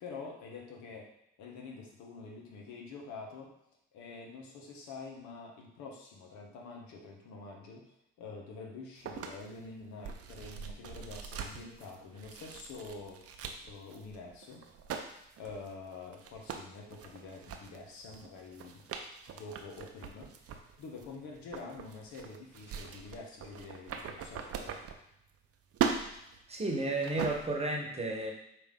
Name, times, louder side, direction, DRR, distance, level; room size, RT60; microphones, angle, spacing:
voice 1, 0.0-1.1 1.4-3.5 3.9-7.8 8.2-13.2 13.6-14.6 15.4-18.8 19.3-24.8, left 4 dB, 75° left, 0 dB, 1.0 m, -47 dB
sound 1, 9.0-25.5 25.7-27.7, right 7 dB, 55° right, 0.6 m, -41 dB
voice 2, 26.5-28.3, right 2 dB, 20° right, 0 dB, 1.1 m, -32 dB
4.9 x 2.6 x 3.6 m, 0.80 s
supercardioid pair, 60°, 29 cm